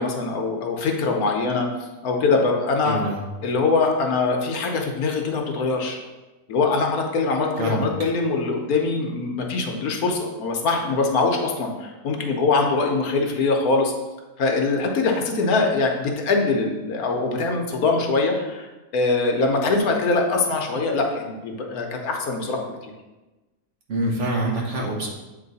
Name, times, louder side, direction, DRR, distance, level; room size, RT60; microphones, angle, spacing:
voice 1, 0.0-3.0 3.4-6.0 6.5-13.9 14.4-22.9, left 3 dB, 70° left, 2 dB, 1.2 m, -23 dB
voice 2, 2.8-3.2 7.6-7.9 23.9-25.1, right 1 dB, 55° right, -1 dB, 1.2 m, -25 dB
7.8 x 3.1 x 4.0 m, 1.1 s
omnidirectional pair, 1.7 m